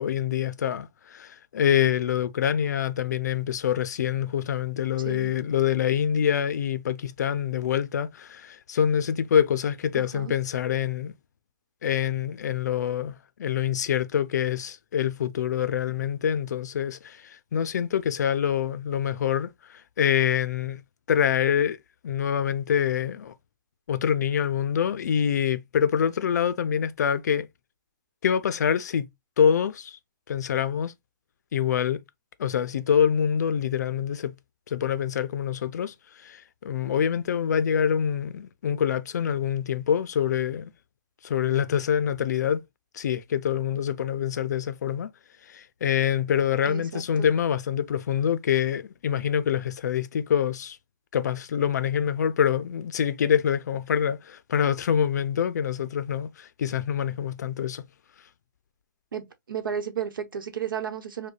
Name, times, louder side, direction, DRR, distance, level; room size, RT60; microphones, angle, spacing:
voice 1, 0.0-11.1 11.8-13.1 13.4-20.8 21.1-21.8 22.0-23.3 23.9-27.5 28.2-29.1 29.4-30.0 30.3-30.9 31.5-32.0 32.4-34.3 34.7-35.9 36.2-40.7 41.2-42.6 42.9-45.1 45.5-50.8 51.1-57.8, left 8 dB, 55° left, 0.4 m, -25 dB
voice 2, 9.9-10.3 46.6-47.3 59.1-61.3, right 8 dB, 90° right, 1.0 m, -33 dB
5.0 x 2.2 x 2.3 m
hypercardioid pair, 170°, 11 cm